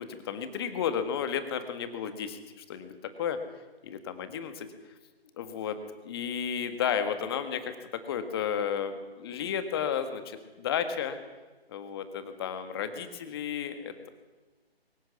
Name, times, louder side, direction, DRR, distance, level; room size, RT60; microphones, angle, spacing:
voice 1, 0.0-2.9 3.2-3.4 3.8-4.7 5.3-11.2 11.7-14.1, left 8 dB, 25° left, 9 dB, 1.8 m, -33 dB
23.5 x 14.5 x 9.6 m, 1.2 s
figure-of-eight pair, 150°, 31 cm